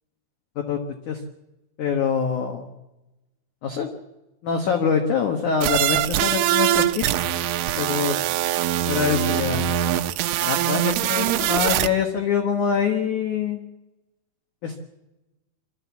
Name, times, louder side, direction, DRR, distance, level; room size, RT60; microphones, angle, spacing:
voice 1, 1.8-2.7 3.6-3.9 4.4-7.3 7.8-8.2 8.9-9.8 10.4-13.6 14.6-14.8, left 6 dB, 70° left, 4 dB, 1.9 m, -24 dB
sound 1, 5.6-11.9, right 12 dB, 80° right, 3.2 m, -23 dB
25.0 x 13.5 x 8.3 m, 1.0 s
omnidirectional pair, 5.5 m